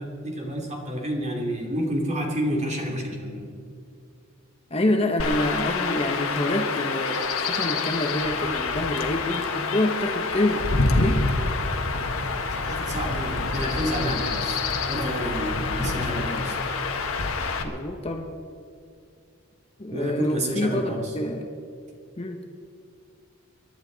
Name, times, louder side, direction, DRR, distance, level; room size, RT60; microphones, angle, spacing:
voice 1, 0.0-3.5 12.6-14.6 14.9-16.6 19.9-21.1, equal, 35° right, 0 dB, 2.8 m, -29 dB
voice 2, 4.7-11.3 17.6-18.3 19.8-21.5 22.2-22.5, left 1 dB, 30° left, 3 dB, 1.0 m, -27 dB
Chirp tweet / Wind / Stream, 5.2-17.6, left 3 dB, 80° left, 1.4 m, -27 dB
28.5 x 11.5 x 4.0 m, 2.3 s
head